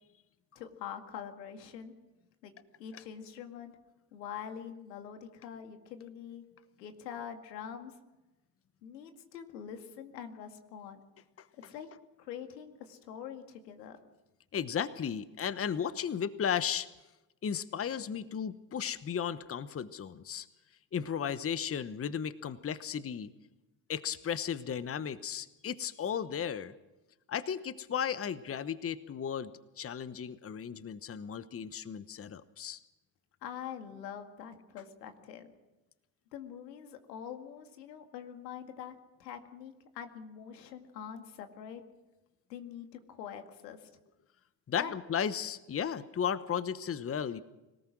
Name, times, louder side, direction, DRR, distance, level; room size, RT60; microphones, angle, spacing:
voice 1, 0.6-1.9 2.4-2.5 2.8-3.8 4.1-6.4 6.8-7.9 8.8-11.0 11.5-11.9 12.2-14.0 33.4-35.5 36.3-41.8 42.5-43.9 44.8-44.9, left 8 dB, 85° left, 6 dB, 2.2 m, -44 dB
voice 2, 14.5-16.9 17.4-20.5 20.9-23.3 23.9-26.7 27.3-29.5 29.8-32.8 44.7-47.4, left 8 dB, 30° left, 15 dB, 1.1 m, -35 dB
25.5 x 18.0 x 6.2 m, 1.0 s
hypercardioid pair, 65°, 48 cm